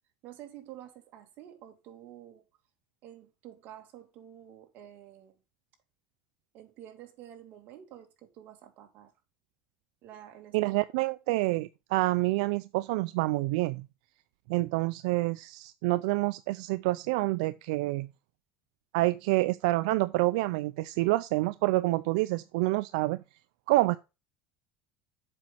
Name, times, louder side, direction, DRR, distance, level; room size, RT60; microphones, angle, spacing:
voice 1, 0.2-2.4 3.0-5.4 6.5-9.1 10.0-10.8, right 11 dB, 55° right, 2.3 m, -49 dB
voice 2, 10.5-13.9 14.5-18.1 18.9-23.2 23.7-24.0, right 20 dB, 90° right, 0.4 m, -27 dB
7.7 x 5.3 x 5.8 m
cardioid pair, 135°, 4 cm